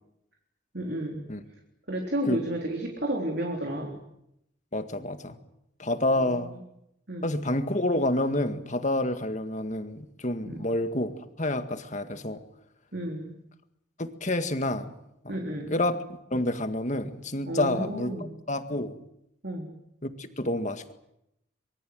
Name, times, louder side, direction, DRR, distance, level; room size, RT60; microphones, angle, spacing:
voice 1, 0.7-1.2 1.9-4.0 6.1-6.6 7.1-7.3 10.4-10.6 12.9-13.4 15.3-15.8 17.5-18.3 19.4-19.7, right 1 dB, 50° right, 2 dB, 3.6 m, -32 dB
voice 2, 4.7-5.4 5.8-6.5 7.2-12.4 14.0-14.9 15.2-15.4 15.7-16.0 16.3-18.1 18.5-18.9 20.0-20.9, left 1 dB, 35° left, 8 dB, 1.9 m, -28 dB
25.0 x 23.0 x 7.8 m, 0.80 s
head